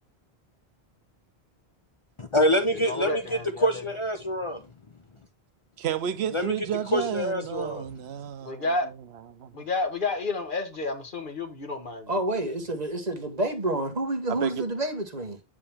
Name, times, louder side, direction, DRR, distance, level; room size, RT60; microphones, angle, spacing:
voice 1, 2.2-3.2 3.6-4.6 6.3-6.5 6.9-7.9, equal, 35° left, 0.7 m, -25 dB
voice 2, 2.7-3.8 8.4-8.9 9.5-12.1 12.4-12.5, left 3 dB, 55° left, 1.4 m, -31 dB
voice 3, 5.8-8.7 9.3-9.6 14.3-14.7, right 9 dB, 90° right, 0.9 m, -31 dB
voice 4, 12.1-15.4, right 1 dB, 40° right, 1.5 m, -29 dB
8.6 x 5.0 x 3.4 m
omnidirectional pair, 1.1 m